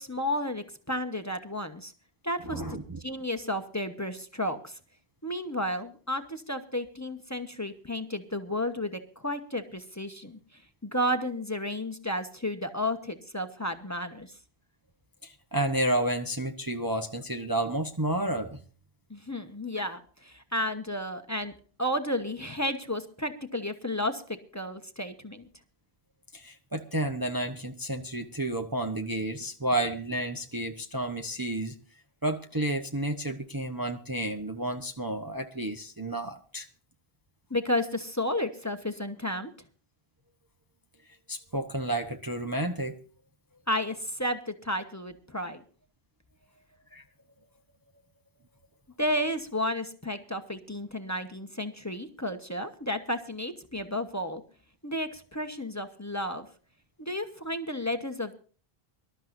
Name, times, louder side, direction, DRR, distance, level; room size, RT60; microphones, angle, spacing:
voice 1, 0.0-1.9 2.2-4.8 5.2-10.4 10.8-14.3 19.1-21.5 21.8-25.5 37.5-39.5 43.7-45.6 49.0-54.4 54.8-56.5 57.0-58.4, left 1 dB, 15° left, 7 dB, 1.1 m, -32 dB
voice 2, 2.4-3.0 15.2-18.6 26.3-31.8 32.2-36.7 41.3-43.0 46.9-47.0, right 1 dB, 20° right, 4 dB, 0.9 m, -31 dB
25.0 x 12.5 x 2.6 m, 0.39 s
omnidirectional pair, 1.1 m